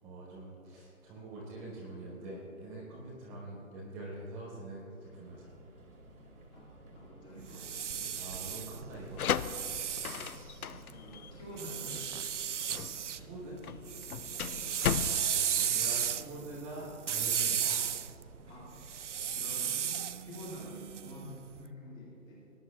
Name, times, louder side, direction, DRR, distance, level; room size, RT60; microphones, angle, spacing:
voice 1, 0.0-5.5 8.1-9.3 12.7-13.6 14.9-17.9, right 2 dB, 5° right, -9 dB, 1.0 m, -45 dB
Subway metro underground, 4.9-19.8, right 1 dB, 85° right, 2.6 m, -56 dB
voice 2, 6.5-8.1 10.9-12.0 15.1-15.3 15.5-15.8 18.4-18.8 19.3-22.4, left 1 dB, 10° left, -5 dB, 2.2 m, -48 dB
sound 1, 7.4-10.9 11.6-13.2 13.6-21.5, right 8 dB, 60° right, 0.5 m, -34 dB
sound 2, 8.9-16.5, left 8 dB, 85° left, 0.5 m, -37 dB
20.5 x 10.5 x 2.4 m, 2.8 s
figure-of-eight pair, 150°, 43 cm